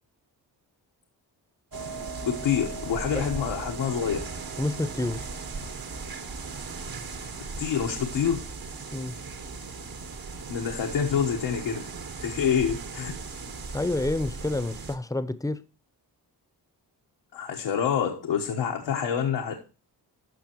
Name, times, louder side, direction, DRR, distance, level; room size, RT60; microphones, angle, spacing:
sound 1, 1.7-15.0, right 4 dB, 55° right, 1.4 m, -37 dB
voice 1, 2.2-4.3 7.6-8.5 10.5-11.9 12.2-13.1 17.3-19.5, left 8 dB, 90° left, 1.3 m, -27 dB
voice 2, 4.6-5.2 8.9-9.2 13.7-15.6, left 2 dB, 10° left, 0.7 m, -29 dB
13.0 x 5.7 x 3.0 m
cardioid pair, 70°, 42 cm